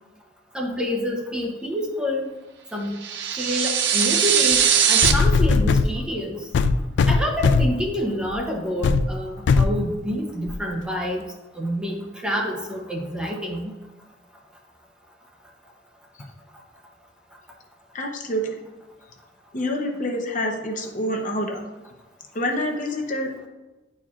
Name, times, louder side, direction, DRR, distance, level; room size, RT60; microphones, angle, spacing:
voice 1, 0.5-2.3 2.7-3.0 3.4-4.6 4.9-6.4 7.1-11.2 11.6-13.7, equal, 5° right, 0 dB, 0.7 m, -27 dB
sound 1, 3.0-5.1, right 8 dB, 65° right, 0.5 m, -20 dB
sound 2, 4.5-4.6 5.0-5.9 6.5-7.8 8.3-8.5 8.8-9.1 9.5-9.8 10.5-10.6, left 4 dB, 65° left, 0.3 m, -19 dB
voice 2, 17.9-18.5 19.5-21.6 22.3-23.5, equal, 45° left, 2 dB, 0.8 m, -27 dB
9.9 x 4.3 x 2.4 m, 1.1 s
head